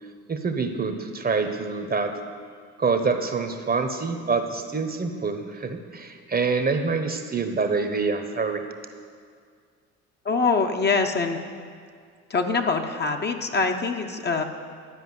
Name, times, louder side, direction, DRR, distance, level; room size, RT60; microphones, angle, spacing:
voice 1, 0.3-2.1 2.8-8.7, right 4 dB, 25° right, 6 dB, 1.0 m, -26 dB
voice 2, 10.2-11.4 12.3-14.4, left 4 dB, 30° left, 4 dB, 0.9 m, -24 dB
11.5 x 5.1 x 7.8 m, 2.1 s
supercardioid pair, 70°, 34 cm